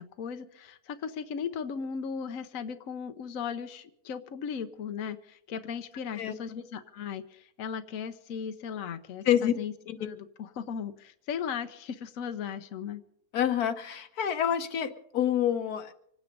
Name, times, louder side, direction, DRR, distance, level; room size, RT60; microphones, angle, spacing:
voice 1, 0.0-9.7 10.0-13.0, left 7 dB, 65° left, 8 dB, 1.2 m, -37 dB
voice 2, 13.3-15.9, left 10 dB, 85° left, 9 dB, 1.5 m, -27 dB
25.5 x 9.6 x 5.3 m, 0.70 s
omnidirectional pair, 1.6 m